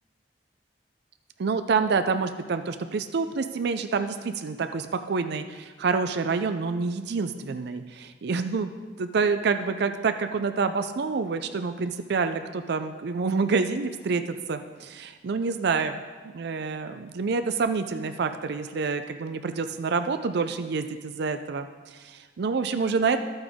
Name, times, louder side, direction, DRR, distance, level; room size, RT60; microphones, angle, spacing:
voice 1, 1.4-8.7 9.0-14.2 14.5-16.0 16.3-23.2, right 4 dB, 65° right, 9 dB, 0.4 m, -27 dB
12.0 x 8.7 x 3.6 m, 1.4 s
head